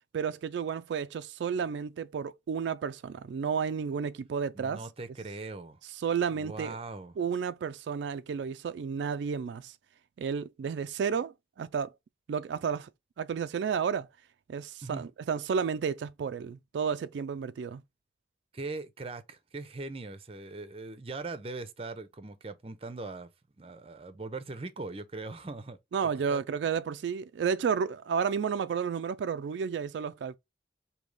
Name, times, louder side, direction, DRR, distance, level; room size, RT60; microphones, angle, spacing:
voice 1, 0.1-4.8 5.9-6.8 7.2-9.8 10.2-11.9 12.3-12.9 13.2-14.1 14.5-17.8 25.9-30.4, right 6 dB, 90° right, 0.3 m, -32 dB
voice 2, 4.5-5.8 6.3-7.1 14.8-15.0 18.5-23.3 23.6-25.8 26.3-26.4, right 3 dB, 30° right, 0.6 m, -40 dB
5.2 x 2.8 x 3.2 m
head